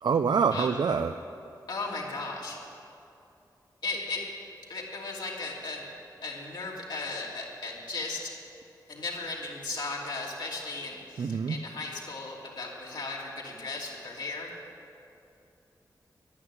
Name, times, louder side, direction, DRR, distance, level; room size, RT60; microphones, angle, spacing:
voice 1, 0.0-1.1 11.2-11.6, right 6 dB, 75° right, 8 dB, 0.5 m, -25 dB
voice 2, 1.7-2.6 3.8-4.3 4.7-5.9 6.2-8.3 8.9-14.5, left 3 dB, 80° left, -3 dB, 3.0 m, -36 dB
11.5 x 11.0 x 9.8 m, 2.6 s
wide cardioid pair, 115°, 7 cm